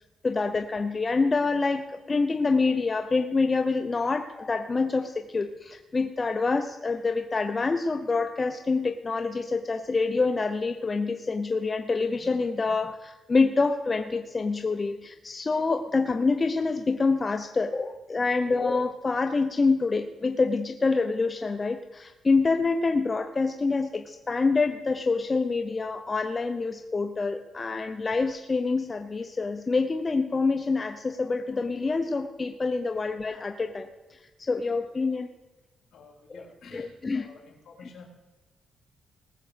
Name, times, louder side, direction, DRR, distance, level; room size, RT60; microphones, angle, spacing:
voice 1, 0.2-35.3 36.3-36.4 36.7-37.3, left 4 dB, 25° left, 6 dB, 0.6 m, -26 dB
voice 2, 35.9-38.0, left 4 dB, 65° left, 0 dB, 3.6 m, -50 dB
19.0 x 7.5 x 5.0 m, 1.1 s
cardioid pair, 110°, 0 cm